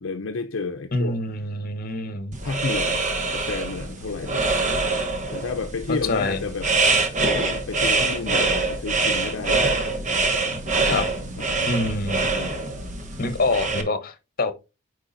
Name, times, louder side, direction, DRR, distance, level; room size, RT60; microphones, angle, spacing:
voice 1, 0.0-1.2 2.4-3.0 3.3-4.5 5.3-6.7 7.2-9.9 10.9-11.1 11.3-11.5 12.3-12.6, left 4 dB, 70° left, 0.6 m, -31 dB
voice 2, 0.9-2.4 5.9-6.4 10.9-11.0 11.7-12.3 13.2-14.5, left 2 dB, 45° left, 1.0 m, -25 dB
sound 1, 2.3-13.8, right 3 dB, 40° right, 1.2 m, -24 dB
9.2 x 4.8 x 2.6 m
head